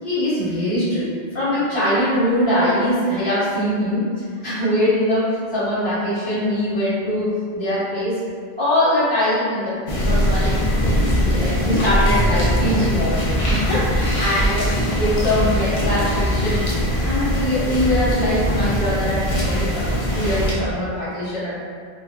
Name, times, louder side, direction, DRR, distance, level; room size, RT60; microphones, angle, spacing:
voice 1, 0.0-4.1 4.4-8.2 8.6-10.7 11.0-13.2 13.5-16.6 17.0-21.5, left 1 dB, 70° left, -14 dB, 1.7 m, -22 dB
sound 1, 9.9-20.5, equal, 45° left, 0.5 m, -21 dB
3.7 x 2.4 x 2.3 m, 2.1 s
omnidirectional pair, 1.1 m